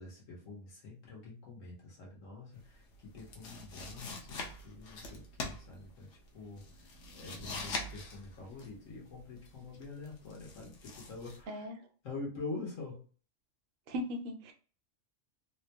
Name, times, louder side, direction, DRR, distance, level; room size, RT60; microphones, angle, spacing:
voice 1, 0.0-6.9 7.1-11.7 12.0-13.0, left 3 dB, 85° left, -3 dB, 1.5 m, -46 dB
sound 1, 2.6-11.4, left 3 dB, 70° left, 1.1 m, -44 dB
voice 2, 11.5-11.8 13.9-14.5, left 1 dB, 55° right, 5 dB, 0.7 m, -38 dB
3.7 x 2.2 x 2.9 m, 0.39 s
omnidirectional pair, 1.3 m